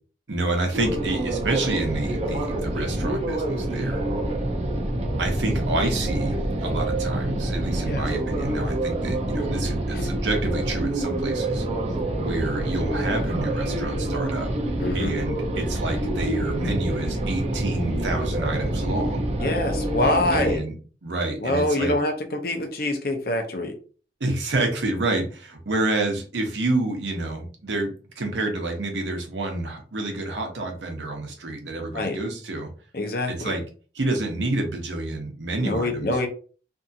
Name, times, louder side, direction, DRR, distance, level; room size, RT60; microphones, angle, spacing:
voice 1, 0.3-4.0 5.2-11.6 12.1-14.5 14.9-19.3 20.3-20.7 21.0-21.9 24.2-32.7 33.3-33.6 33.9-36.1, right 2 dB, 85° right, 3 dB, 0.8 m, -28 dB
sound 1, 0.7-20.6, right 1 dB, 35° right, 0.4 m, -27 dB
voice 2, 14.8-15.1 19.4-20.6 21.4-23.8 31.9-32.2 32.9-33.6 35.6-36.3, left 1 dB, 55° left, 4 dB, 0.6 m, -25 dB
2.7 x 2.4 x 2.6 m, 0.39 s
head